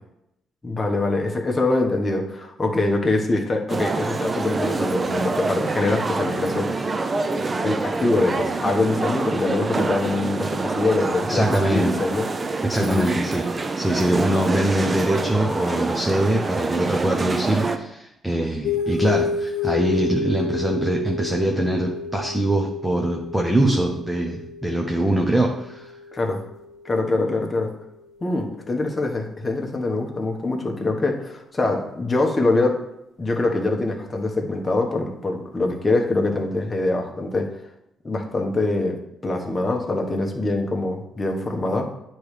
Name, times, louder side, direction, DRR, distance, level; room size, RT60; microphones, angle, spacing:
voice 1, 0.6-6.7 7.6-12.3 12.8-13.1 26.1-26.4 26.8-27.7 28.2-32.8 33.2-37.5 38.0-39.0 39.2-41.9, left 2 dB, 25° left, 1 dB, 1.2 m, -24 dB
sound 1, 3.7-17.8, right 3 dB, 30° right, 0.6 m, -26 dB
voice 2, 11.3-12.0 12.6-13.5 13.8-25.9, right 1 dB, 5° right, 0 dB, 0.8 m, -23 dB
sound 2, 18.6-27.6, left 5 dB, 80° left, 1.0 m, -30 dB
9.1 x 3.2 x 5.0 m, 0.84 s
cardioid pair, 90°, 0 cm